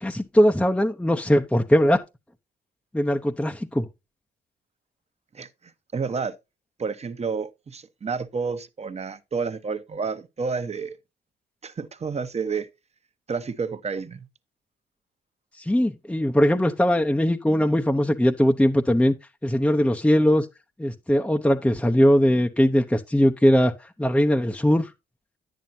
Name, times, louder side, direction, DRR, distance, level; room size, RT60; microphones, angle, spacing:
voice 1, 0.0-2.0 2.9-3.9 15.6-19.1 19.4-20.5 20.8-24.9, equal, 5° left, 0.8 m, -20 dB
voice 2, 5.3-6.4 6.8-11.0 11.6-12.7 13.3-14.3, right 5 dB, 30° right, 1.1 m, -30 dB
10.0 x 9.1 x 2.7 m
cardioid pair, 90°, 20 cm